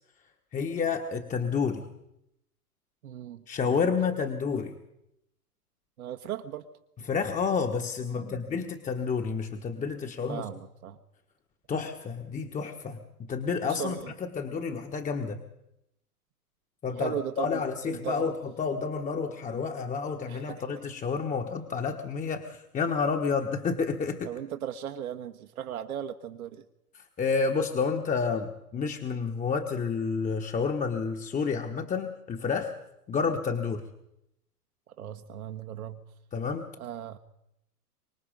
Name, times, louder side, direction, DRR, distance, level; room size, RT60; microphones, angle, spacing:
voice 1, 0.5-1.9 3.5-4.7 7.0-10.4 11.7-15.4 16.8-24.3 26.9-32.7 33.1-33.8 36.3-36.6, left 5 dB, 15° left, 5 dB, 1.5 m, -30 dB
voice 2, 3.0-3.9 6.0-6.7 8.1-8.6 10.3-11.0 13.6-14.1 17.0-18.3 20.3-20.6 24.2-26.6 35.0-36.0 36.8-37.2, right 10 dB, 65° right, 6 dB, 1.6 m, -37 dB
25.0 x 20.0 x 5.3 m, 0.82 s
hypercardioid pair, 110°, 46 cm